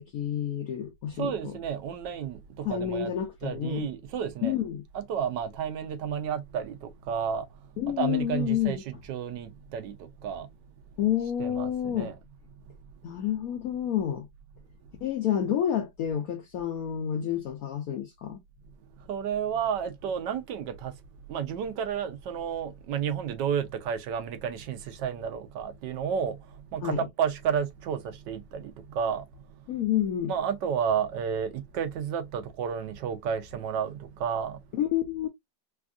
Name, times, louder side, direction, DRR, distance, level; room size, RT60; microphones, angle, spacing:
voice 1, 0.0-1.5 2.6-3.9 4.4-4.8 7.8-8.8 11.0-12.1 13.0-14.3 15.0-18.4 26.8-27.1 29.7-30.3 34.7-35.3, left 10 dB, 80° left, 0.8 m, -29 dB
voice 2, 1.2-3.1 3.4-4.5 4.9-7.4 8.0-10.5 11.4-12.1 19.1-20.9 21.3-26.4 26.7-29.2 30.3-34.6, right 7 dB, 75° right, 1.2 m, -31 dB
3.4 x 2.3 x 2.4 m
omnidirectional pair, 2.0 m